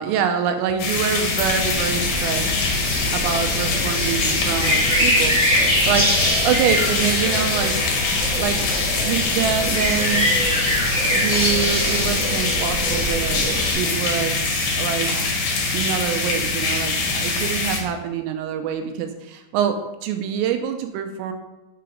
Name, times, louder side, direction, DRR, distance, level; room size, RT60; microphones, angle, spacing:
voice 1, 0.0-2.5 2.8-5.4 5.9-6.1 6.4-7.8 8.4-8.7 9.0-10.3 11.1-15.4 15.7-21.3, right 8 dB, 85° right, 6 dB, 3.4 m, -25 dB
sound 1, 0.8-17.8, left 3 dB, 60° left, 2.3 m, -23 dB
sound 2, 1.4-13.7, equal, 5° right, 0.5 m, -24 dB
8.9 x 6.9 x 5.0 m, 1.0 s
omnidirectional pair, 5.9 m